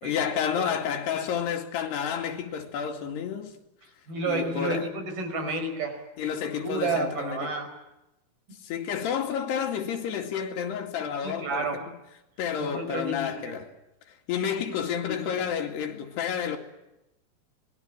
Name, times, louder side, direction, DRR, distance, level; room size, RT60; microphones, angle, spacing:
voice 1, 0.0-3.5 4.3-4.9 6.2-7.6 8.6-11.7 12.4-13.7 14.3-16.6, left 8 dB, 85° left, 4.3 m, -30 dB
voice 2, 4.1-6.0 6.5-7.7 11.2-11.8 12.6-13.6 15.1-15.3, right 3 dB, 65° right, 6.6 m, -31 dB
26.5 x 20.5 x 8.8 m
omnidirectional pair, 4.7 m